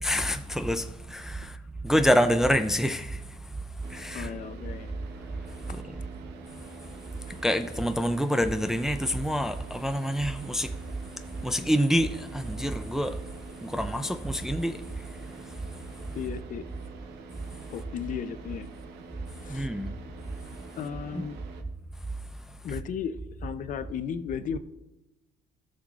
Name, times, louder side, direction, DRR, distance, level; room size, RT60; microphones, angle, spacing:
voice 1, 0.0-1.6 1.8-3.2 3.9-4.3 5.7-5.8 7.4-10.7 11.4-13.2 13.6-14.8 19.5-19.9 21.1-21.2, equal, 5° right, 0.4 m, -26 dB
Car / Idling, 3.8-21.6, right 4 dB, 80° right, 0.9 m, -46 dB
voice 2, 4.1-4.9 5.7-5.8 16.1-16.6 17.7-18.7 19.4-19.7 20.8-21.4 22.6-24.6, left 7 dB, 50° left, 0.5 m, -35 dB
14.5 x 6.4 x 2.4 m
cardioid pair, 110°, 17 cm